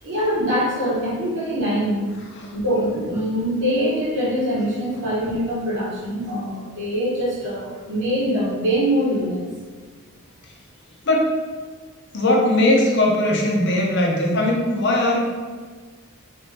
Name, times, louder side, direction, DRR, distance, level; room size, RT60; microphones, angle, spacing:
voice 1, 0.0-2.1 2.5-9.4, equal, 55° right, -6 dB, 1.1 m, -23 dB
voice 2, 12.1-15.3, left 1 dB, 55° left, -1 dB, 0.6 m, -19 dB
3.3 x 2.8 x 3.3 m, 1.5 s
head